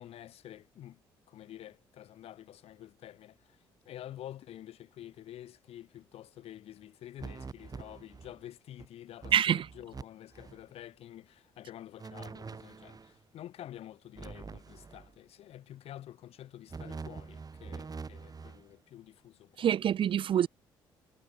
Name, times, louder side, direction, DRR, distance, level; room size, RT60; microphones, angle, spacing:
voice 1, 0.0-19.7, left 12 dB, 65° left, 3.0 m, -49 dB
sound 1, 7.2-8.4 8.8-8.9 9.2-10.0 10.3-10.6 12.0-13.1 14.2-15.1 16.7-18.7, right 4 dB, 35° right, 5.3 m, -45 dB
voice 2, 9.3-9.6 19.6-20.5, right 10 dB, 50° right, 0.6 m, -26 dB
hypercardioid pair, 50°, 11 cm